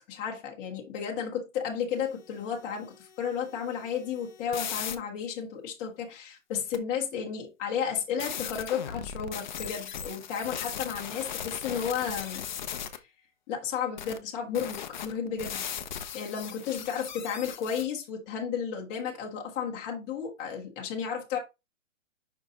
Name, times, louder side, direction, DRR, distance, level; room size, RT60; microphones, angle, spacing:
voice 1, 0.1-12.4 12.8-13.0 13.5-15.6 16.1-21.4, left 7 dB, 15° left, 1.3 m, -33 dB
sound 1, 3.3-5.0 6.7-6.8 8.2-13.0 14.0-14.2 14.5-17.8, left 8 dB, 35° left, 0.7 m, -38 dB
5.7 x 4.6 x 3.8 m
hypercardioid pair, 170°, 39 cm